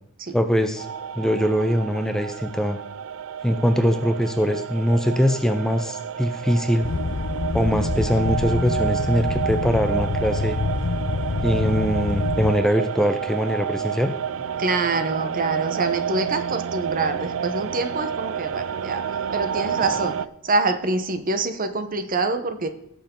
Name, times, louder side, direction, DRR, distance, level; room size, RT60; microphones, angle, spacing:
voice 1, 0.3-0.9 1.2-2.8 3.4-6.9 7.5-10.6 11.4-14.1, equal, 5° left, 7 dB, 0.5 m, -22 dB
sound 1, 0.8-20.3, right 8 dB, 65° right, 0.4 m, -30 dB
sound 2, 6.8-12.5, left 3 dB, 60° left, 0.6 m, -26 dB
voice 2, 14.6-19.0 19.3-20.2 20.4-22.7, right 3 dB, 40° right, 9 dB, 0.9 m, -25 dB
17.0 x 6.9 x 3.8 m, 0.79 s
head